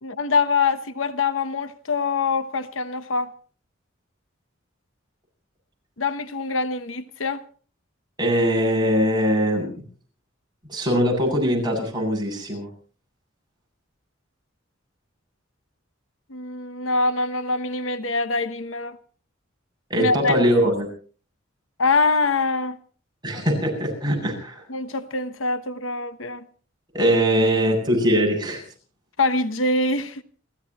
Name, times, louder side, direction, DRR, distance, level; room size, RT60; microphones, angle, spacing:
voice 1, 0.0-3.3 6.0-7.4 16.3-19.0 20.0-20.4 21.8-22.8 24.7-26.4 29.2-30.2, left 3 dB, 85° left, 1.0 m, -24 dB
voice 2, 8.2-9.7 10.7-12.7 19.9-20.9 23.2-24.6 26.9-28.6, equal, 20° right, 7.7 m, -21 dB
30.0 x 14.5 x 3.0 m
head